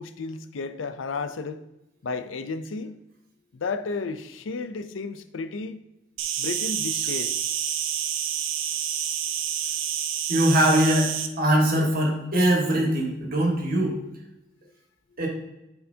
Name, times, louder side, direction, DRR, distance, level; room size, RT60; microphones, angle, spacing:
voice 1, 0.0-1.6 2.0-3.0 3.5-5.8 6.4-7.4, left 4 dB, 85° left, 0.5 m, -32 dB
Insect, 6.2-11.3, right 9 dB, 90° right, 0.6 m, -28 dB
voice 2, 10.3-14.0 15.2-15.3, right 1 dB, 50° right, 1.8 m, -22 dB
10.0 x 4.6 x 2.8 m
head